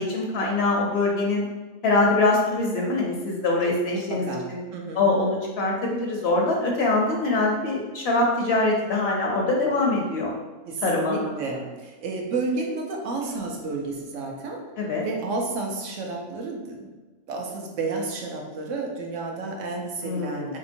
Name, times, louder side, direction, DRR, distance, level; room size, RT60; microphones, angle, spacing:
voice 1, 0.0-1.5 1.8-4.6 4.9-10.3 10.8-11.4 14.8-15.1 20.0-20.5, left 2 dB, 65° left, 0 dB, 0.7 m, -23 dB
voice 2, 3.6-4.4 4.7-5.1 10.6-14.6 15.0-16.9 17.3-20.6, right 3 dB, 80° right, 0 dB, 1.0 m, -31 dB
2.9 x 2.8 x 2.6 m, 1.2 s
omnidirectional pair, 1.3 m